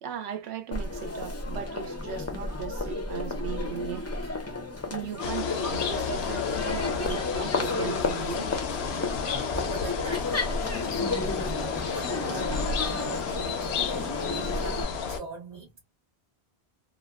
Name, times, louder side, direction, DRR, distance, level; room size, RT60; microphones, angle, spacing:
voice 1, 0.0-4.1 4.9-8.6, right 8 dB, 85° right, 0.9 m, -37 dB
Crowd, 0.7-14.8, left 3 dB, 25° left, 0.4 m, -32 dB
voice 2, 4.2-5.0 8.9-15.8, right 2 dB, 40° right, 0.8 m, -43 dB
sound 1, 5.2-15.2, left 6 dB, 80° left, 0.9 m, -32 dB
2.7 x 2.3 x 2.3 m
omnidirectional pair, 1.1 m